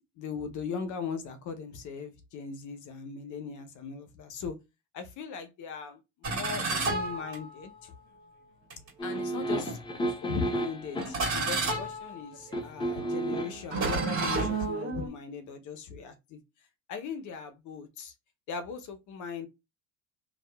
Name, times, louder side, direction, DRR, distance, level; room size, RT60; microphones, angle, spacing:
voice 1, 0.0-4.6 4.9-7.9 9.0-9.8 10.2-16.4 16.9-18.1 18.5-19.5, left 6 dB, 50° left, 0.7 m, -39 dB
sound 1, 6.2-7.9 8.7-8.9 9.7-10.2 11.0-15.1, right 3 dB, 45° right, 1.7 m, -32 dB
sound 2, 9.0-11.3 12.5-13.7 14.2-14.3, right 1 dB, 15° left, 0.5 m, -33 dB
2.7 x 2.3 x 2.2 m
supercardioid pair, 105°, 38 cm